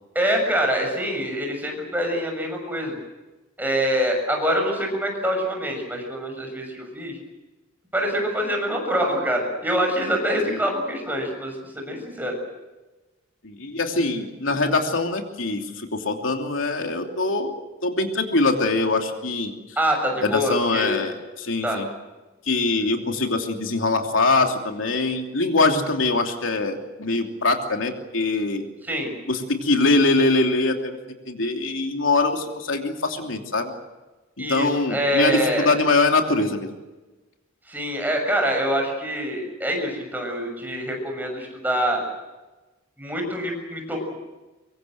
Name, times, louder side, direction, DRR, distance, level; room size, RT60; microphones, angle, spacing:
voice 1, 0.2-3.0 3.6-7.2 7.9-12.4 19.8-21.0 21.6-21.8 28.8-29.1 34.4-35.7 37.7-42.0 43.0-44.1, equal, 10° right, 2 dB, 6.8 m, -25 dB
voice 2, 13.4-17.5 17.8-19.5 20.2-21.9 22.5-28.6 29.3-31.0 31.3-33.7 34.4-36.7, left 3 dB, 85° left, 3 dB, 2.9 m, -23 dB
25.0 x 23.5 x 7.9 m, 1.1 s
head